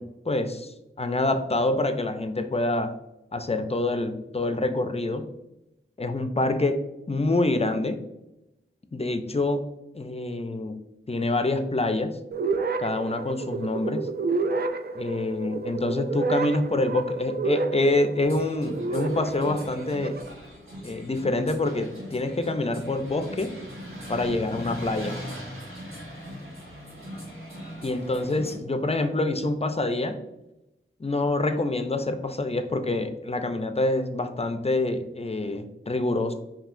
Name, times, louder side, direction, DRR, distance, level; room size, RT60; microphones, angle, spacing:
voice 1, 0.0-2.9 3.3-5.3 6.0-8.0 8.9-9.7 9.9-10.8 11.1-12.2 12.8-14.1 14.9-20.2 20.8-23.5 24.1-25.1 27.8-30.2 31.0-36.3, left 2 dB, 30° left, 8 dB, 0.4 m, -26 dB
sound 1, 12.3-20.3, right 4 dB, 50° right, 0.4 m, -30 dB
sound 2, 18.2-28.5, equal, 90° right, 1.4 m, -40 dB
5.4 x 2.7 x 2.5 m, 0.92 s
wide cardioid pair, 65°, 21 cm